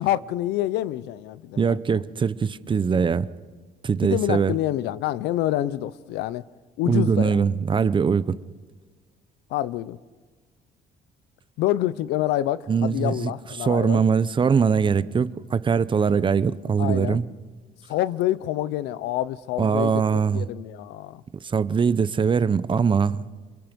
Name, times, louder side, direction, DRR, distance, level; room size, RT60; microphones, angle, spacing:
voice 1, 0.0-2.0 4.0-6.4 6.8-7.4 9.5-10.0 11.6-14.0 16.8-17.2 17.9-19.9 20.3-21.2, left 14 dB, 90° left, 0.7 m, -27 dB
voice 2, 1.6-3.3 3.8-4.5 6.9-8.4 12.7-13.3 13.6-17.3 19.6-20.5 21.4-23.2, right 6 dB, 30° right, 0.8 m, -22 dB
27.5 x 22.0 x 5.3 m
cardioid pair, 110°, 17 cm